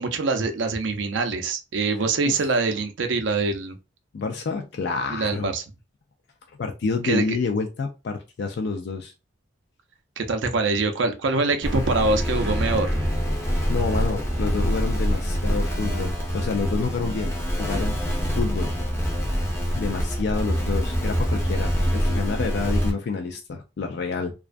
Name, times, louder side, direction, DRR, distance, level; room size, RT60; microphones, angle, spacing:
voice 1, 0.0-3.8 5.1-5.6 7.0-7.2 10.2-13.0, right 3 dB, 65° right, 0.5 m, -24 dB
voice 2, 4.1-5.6 6.6-9.1 13.7-17.3 17.6-18.0 18.4-18.7 19.7-24.3, left 4 dB, 55° left, 0.4 m, -28 dB
sound 1, 11.6-22.9, equal, 15° left, 0.6 m, -25 dB
2.3 x 2.1 x 2.4 m
head